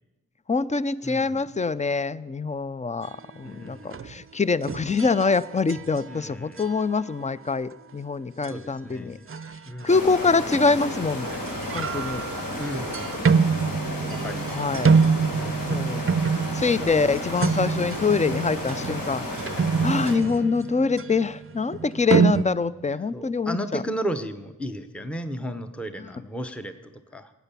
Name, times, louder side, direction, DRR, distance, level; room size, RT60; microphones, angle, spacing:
voice 1, 0.5-9.2 9.8-11.3 11.7-12.2 14.5-14.9 15.7-19.2 19.8-23.8 26.0-26.1, left 4 dB, 20° left, 17 dB, 0.4 m, -25 dB
voice 2, 1.0-1.5 3.4-4.0 6.1-6.6 8.5-9.2 9.7-9.9 12.6-13.6 14.1-14.6 15.3-15.8 20.0-20.6 23.1-27.3, equal, 5° left, 8 dB, 0.8 m, -35 dB
sound 1, 3.9-4.2 4.6-6.1 6.6-6.8 8.4-8.5 9.3-10.0 10.5-10.9 11.2-22.4, right 5 dB, 40° right, 0.5 m, -26 dB
sound 2, 9.9-20.2, left 1 dB, 65° left, 3.1 m, -33 dB
17.0 x 8.2 x 6.9 m, 1.0 s
wide cardioid pair, 80°, 36 cm